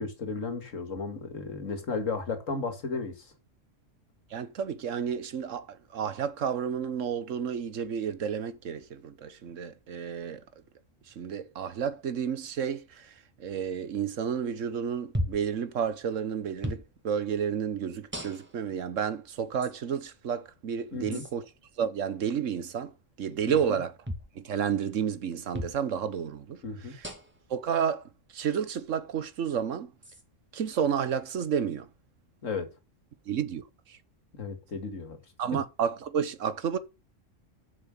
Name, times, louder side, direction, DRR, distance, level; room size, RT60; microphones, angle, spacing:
voice 1, 0.0-3.3 20.9-21.2 23.5-23.8 26.6-26.9 32.4-32.7 34.4-35.2, left 4 dB, 85° left, 2.3 m, -34 dB
voice 2, 4.3-10.4 11.2-13.1 13.4-21.4 21.8-22.9 23.2-24.0 24.3-26.6 26.9-27.1 27.5-28.0 28.3-29.9 30.5-31.9 33.3-33.6 33.9-34.0 35.4-36.8, right 8 dB, 75° right, 1.4 m, -31 dB
sound 1, 15.1-15.5 16.6-16.9 18.1-18.6 19.6-19.7 21.1-21.3 24.0-24.3 25.5-25.8 27.0-27.4 28.5-28.6 30.0-30.2, equal, 10° right, 2.0 m, -35 dB
7.5 x 6.9 x 7.4 m
omnidirectional pair, 1.3 m